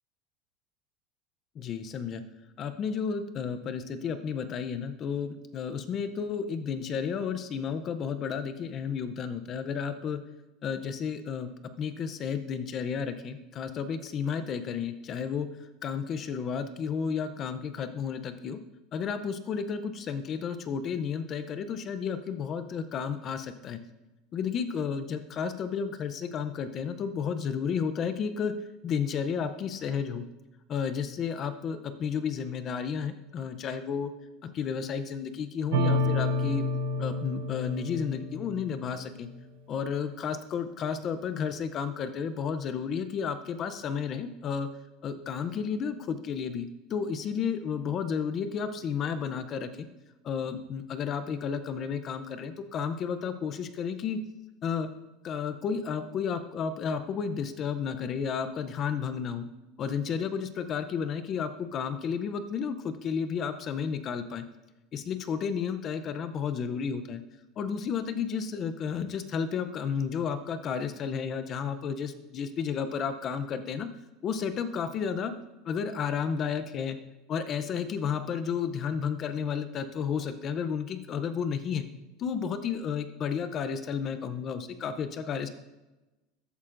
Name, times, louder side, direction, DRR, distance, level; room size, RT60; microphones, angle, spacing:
voice 1, 1.6-2.2 2.6-10.2 10.6-11.5 11.8-15.5 15.8-18.6 18.9-23.8 24.3-28.5 28.8-30.2 30.7-34.1 34.4-36.6 37.0-39.3 39.7-44.7 45.0-49.9 50.2-54.2 54.6-54.9 55.2-59.4 59.8-64.4 64.9-67.2 67.6-73.9 74.2-75.3 75.7-77.0 77.3-81.8 82.2-85.5, left 6 dB, 30° left, 10 dB, 0.5 m, -32 dB
sound 1, 35.7-39.2, left 1 dB, 80° right, 0.7 m, -29 dB
14.0 x 8.4 x 2.5 m, 1.0 s
supercardioid pair, 160°, 0 cm